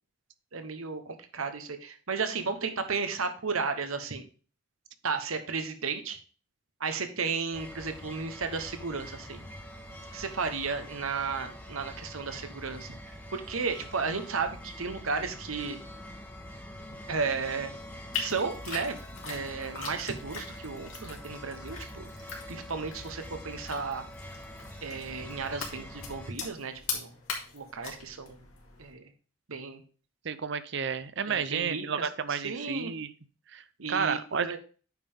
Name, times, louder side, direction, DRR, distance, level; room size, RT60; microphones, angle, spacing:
voice 1, 0.5-4.2 5.0-6.2 6.8-9.4 10.1-15.8 17.1-17.7 18.2-18.9 19.2-22.1 22.5-24.0 24.8-27.1 27.5-28.4 28.8-29.1 29.5-29.8 31.2-32.9 33.8-34.6, right 4 dB, 80° right, 8 dB, 1.2 m, -34 dB
sound 1, 7.5-26.3, equal, 10° left, 1.2 m, -45 dB
Moist Stirring Noise, 18.1-28.9, left 5 dB, 80° left, 2.4 m, -41 dB
voice 2, 30.2-33.1 33.5-34.6, right 6 dB, 55° right, 14 dB, 0.6 m, -31 dB
9.1 x 5.5 x 3.6 m, 0.38 s
head